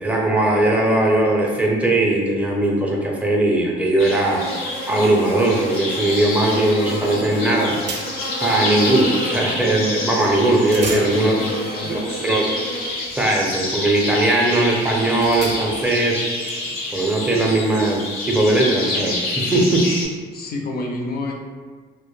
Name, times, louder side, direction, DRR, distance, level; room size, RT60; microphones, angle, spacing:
voice 1, 0.0-4.4 4.9-7.8 8.4-11.4 11.9-12.5 13.1-16.2 16.9-19.8, right 2 dB, 5° right, -2 dB, 0.5 m, -19 dB
sound 1, 4.0-20.0, left 2 dB, 85° left, 0.8 m, -27 dB
sound 2, 7.9-8.4 10.2-10.3 10.6-15.9, right 4 dB, 60° right, 0.5 m, -36 dB
voice 2, 10.8-12.0 20.3-21.3, left 2 dB, 50° left, 1 dB, 0.5 m, -28 dB
2.1 x 2.1 x 3.1 m, 1.5 s
cardioid pair, 90°, 20 cm